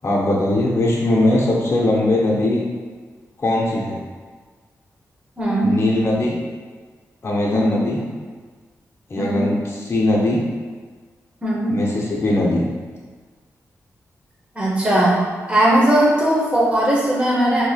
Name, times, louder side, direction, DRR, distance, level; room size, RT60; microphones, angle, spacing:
voice 1, 0.0-2.6 3.4-4.0 5.6-6.4 7.2-8.0 9.1-10.4 11.7-12.7, left 1 dB, 45° left, -4 dB, 0.6 m, -20 dB
voice 2, 5.4-5.7 7.5-7.8 9.2-9.4 11.4-11.8 14.5-15.2 15.5-17.6, right 1 dB, 20° right, -6 dB, 1.0 m, -18 dB
3.0 x 2.8 x 2.4 m, 1.5 s
cardioid pair, 70°, 6 cm